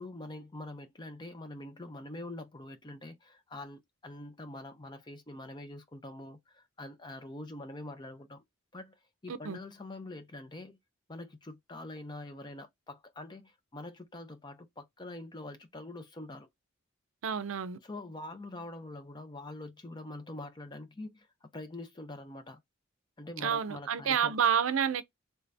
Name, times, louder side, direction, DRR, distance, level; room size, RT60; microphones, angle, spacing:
voice 1, 0.0-8.4 8.7-10.8 11.1-16.5 17.8-21.3 21.5-22.6 23.2-24.4, left 2 dB, 20° left, 0.5 m, -44 dB
voice 2, 9.3-9.6 17.2-17.8 23.4-25.0, right 8 dB, 75° right, 0.5 m, -29 dB
3.3 x 2.6 x 3.3 m
head